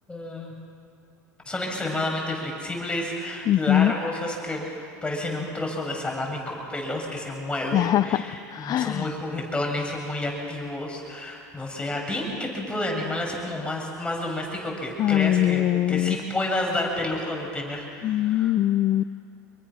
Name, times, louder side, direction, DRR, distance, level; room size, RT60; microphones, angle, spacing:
voice 1, 0.1-0.5 1.5-4.7 5.0-18.5, left 1 dB, 10° left, 0 dB, 7.0 m, -30 dB
voice 2, 3.5-3.9 7.7-9.1 15.0-16.2 18.0-19.0, left 13 dB, 45° left, 13 dB, 0.6 m, -22 dB
26.0 x 23.0 x 6.4 m, 2.4 s
hypercardioid pair, 90°, 9 cm